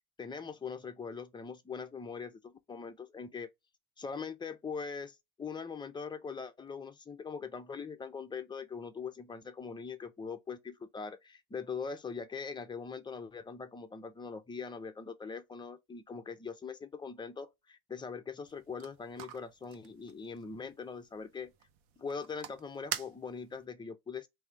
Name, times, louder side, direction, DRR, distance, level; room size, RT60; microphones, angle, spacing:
voice 1, 0.2-3.5 4.0-21.5 22.0-24.3, left 5 dB, 10° left, 0.5 m, -42 dB
sound 1, 18.4-23.7, right 10 dB, 75° right, 1.0 m, -46 dB
3.6 x 2.7 x 4.5 m
supercardioid pair, 105°, 43 cm